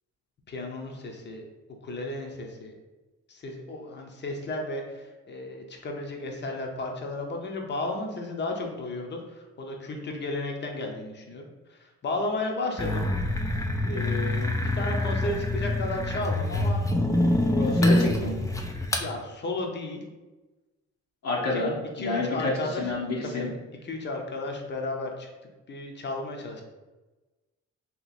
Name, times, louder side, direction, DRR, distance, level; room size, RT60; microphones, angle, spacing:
voice 1, 0.5-1.5 1.8-2.7 3.3-13.1 13.8-16.9 18.8-20.0 21.5-21.6 22.0-22.9 23.2-23.5 23.8-25.3 25.7-26.6, left 2 dB, 35° left, 2 dB, 0.8 m, -34 dB
sound 1, 12.8-19.1, left 1 dB, 10° left, 0.4 m, -25 dB
voice 2, 17.6-18.4 21.2-23.5, left 2 dB, 60° left, -2 dB, 0.9 m, -29 dB
3.0 x 2.9 x 4.1 m, 1.1 s
cardioid pair, 90°, 30 cm